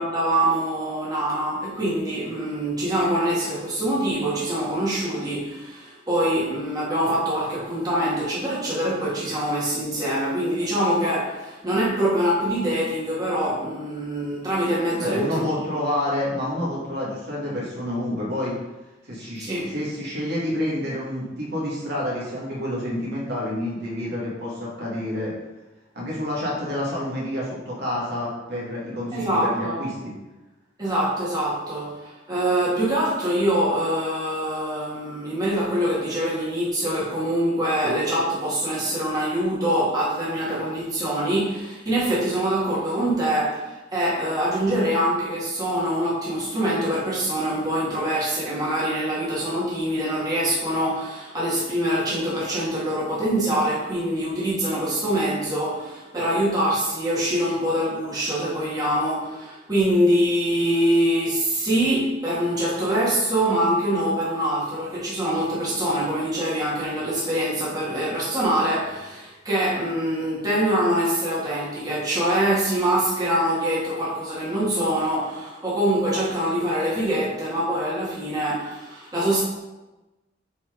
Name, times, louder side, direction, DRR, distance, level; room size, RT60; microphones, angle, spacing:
voice 1, 0.0-15.5 19.4-19.7 29.1-29.8 30.8-79.4, right 1 dB, 20° right, -7 dB, 2.1 m, -24 dB
voice 2, 14.9-18.6 19.0-25.3 25.9-30.1, left 1 dB, 60° right, -5 dB, 2.3 m, -28 dB
8.4 x 4.4 x 4.0 m, 1.0 s
head